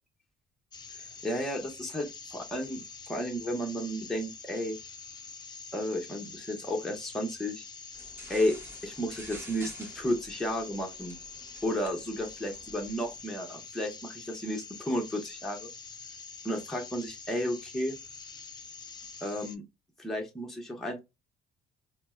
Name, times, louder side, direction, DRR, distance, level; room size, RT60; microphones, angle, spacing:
sound 1, 0.7-19.6, left 5 dB, 25° left, 0.4 m, -46 dB
voice 1, 1.2-2.8 3.1-4.8 5.7-7.6 8.3-8.6 8.8-11.2 11.6-15.7 16.4-18.0 19.2-19.6 20.0-21.0, equal, ahead, 0 dB, 0.8 m, -33 dB
sound 2, 7.9-13.2, right 1 dB, 15° right, 1.2 m, -50 dB
4.3 x 2.1 x 2.2 m, 0.23 s
cardioid pair, 110°, 17 cm